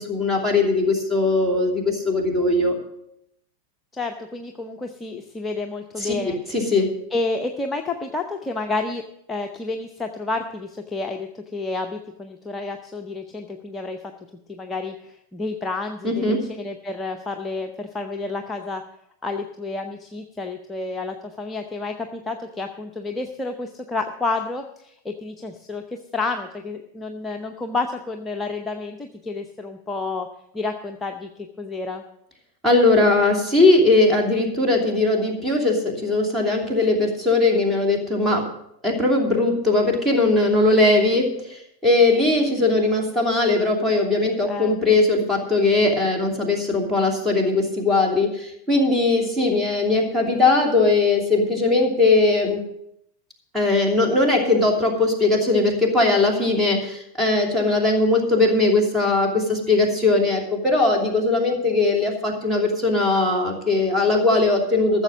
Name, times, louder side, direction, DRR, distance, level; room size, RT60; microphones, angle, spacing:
voice 1, 0.0-2.8 6.0-6.9 16.0-16.4 32.6-38.5 38.8-52.6 53.5-65.0, left 2 dB, 10° right, 0 dB, 2.8 m, -20 dB
voice 2, 3.9-6.6 7.1-9.0 9.3-14.0 14.5-18.8 19.2-30.3 30.5-31.3 31.6-32.0 44.5-44.8, left 3 dB, 15° left, 3 dB, 0.8 m, -30 dB
14.0 x 7.0 x 6.2 m, 0.76 s
figure-of-eight pair, 90°, 0 cm